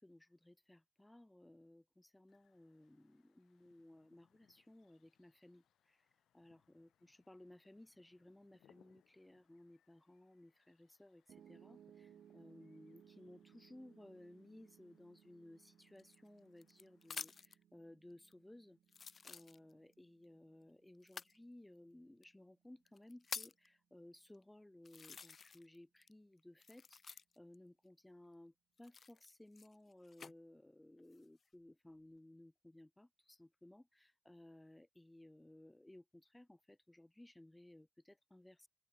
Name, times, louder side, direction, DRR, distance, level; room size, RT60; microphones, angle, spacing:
voice 1, 0.0-6.0 6.3-18.8 19.2-38.7, left 1 dB, 10° left, 1.4 m, -60 dB
sound 1, 2.3-17.3, left 11 dB, 85° left, 5.0 m, -78 dB
Piano, 11.3-23.5, right 9 dB, 75° right, 3.1 m, -66 dB
sound 2, 16.0-17.6 18.3-18.4 18.9-19.9 21.0-21.4 22.2-22.3 22.9-23.7 24.3-24.4 24.9-25.8 26.0-27.6 28.8-30.3 31.0-31.5, left 5 dB, 45° left, 0.3 m, -50 dB
cardioid pair, 100°, 0 cm